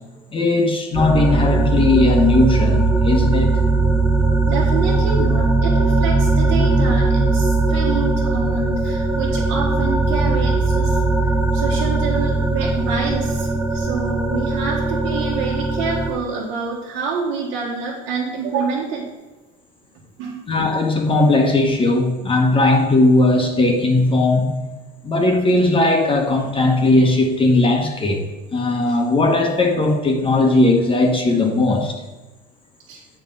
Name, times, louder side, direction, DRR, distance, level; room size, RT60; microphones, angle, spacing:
voice 1, 0.3-3.6 20.5-24.6 25.0-28.2 28.5-32.0, left 2 dB, 25° left, 2 dB, 1.3 m, -17 dB
sound 1, 0.9-16.1, right 3 dB, 5° right, 0.7 m, -19 dB
voice 2, 4.5-11.0 11.5-13.5 13.7-19.1 20.2-20.4 28.9-29.0 32.9-33.0, right 5 dB, 70° right, -5 dB, 1.6 m, -27 dB
7.8 x 4.9 x 5.4 m, 1.2 s
supercardioid pair, 110°, 21 cm